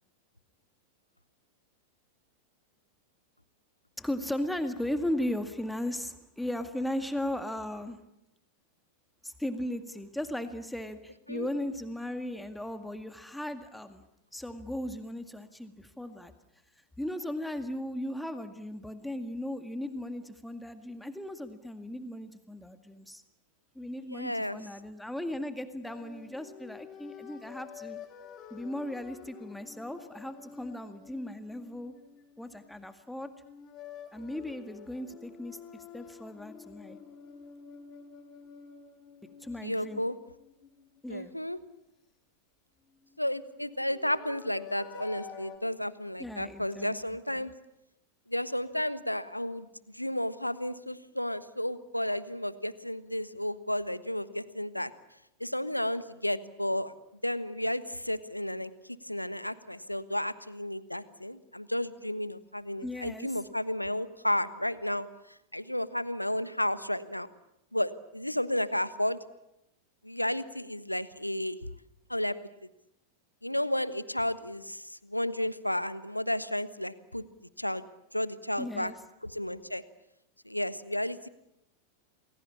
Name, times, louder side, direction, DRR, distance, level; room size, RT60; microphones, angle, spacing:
voice 1, 4.0-8.0 9.2-14.0 14.3-16.3 17.0-23.2 23.8-28.0 28.5-31.9 32.4-33.3 34.1-37.0 39.4-40.0 41.0-41.3 46.2-47.0 47.3-47.5 62.8-63.4 78.6-79.0, left 1 dB, 5° left, 9 dB, 2.0 m, -37 dB
voice 2, 24.1-24.6 39.6-40.1 41.1-41.6 43.2-47.5 48.3-49.7 49.9-54.9 55.4-56.9 57.2-67.3 67.7-69.2 70.0-71.6 72.1-72.4 73.4-77.2 77.6-77.8 78.1-78.9 79.3-79.8 80.4-81.3, left 1 dB, 90° left, 15 dB, 1.3 m, -32 dB
sound 1, 25.8-32.9 33.4-41.2 42.9-45.6, left 7 dB, 30° left, 4.2 m, -49 dB
29.0 x 21.5 x 8.6 m, 0.84 s
figure-of-eight pair, 90°, 0 cm